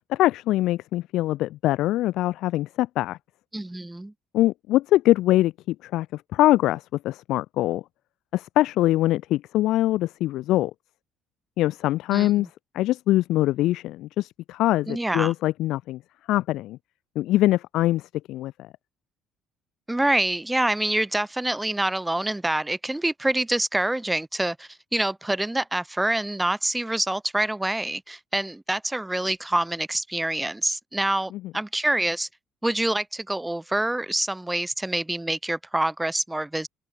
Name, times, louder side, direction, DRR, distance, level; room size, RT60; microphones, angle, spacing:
voice 1, 0.1-3.2 4.3-7.8 8.3-10.7 11.6-12.5 12.7-16.0 16.3-16.8 17.2-18.0 18.3-18.5, left 15 dB, 70° left, 0.5 m, -23 dB
voice 2, 3.5-4.1 12.1-12.5 14.9-15.3 19.9-32.3 32.6-36.7, right 1 dB, 5° right, 0.3 m, -26 dB
cardioid pair, 130°, 0 cm